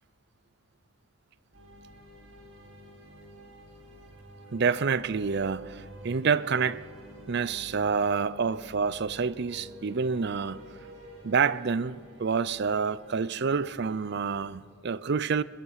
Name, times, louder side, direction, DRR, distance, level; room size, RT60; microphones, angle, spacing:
sound 1, 1.5-14.4, right 1 dB, 65° right, 5.8 m, -49 dB
voice 1, 4.5-6.8 7.3-10.6 11.2-15.4, right 5 dB, 50° right, 0.5 m, -28 dB
23.0 x 19.5 x 6.4 m
head